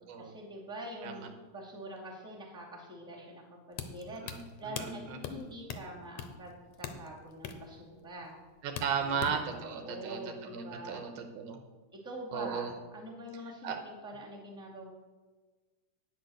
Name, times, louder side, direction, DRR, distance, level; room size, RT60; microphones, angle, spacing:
voice 1, 0.2-4.2 4.6-8.4 9.0-11.0 11.9-14.9, right 1 dB, ahead, -4 dB, 1.8 m, -45 dB
sound 1, 3.7-9.6, left 7 dB, 70° left, 2.0 m, -43 dB
voice 2, 4.1-5.2 8.6-11.6 12.3-12.7 13.6-13.8, right 6 dB, 80° right, 5 dB, 2.5 m, -36 dB
9.5 x 8.5 x 6.4 m, 1.3 s
omnidirectional pair, 3.6 m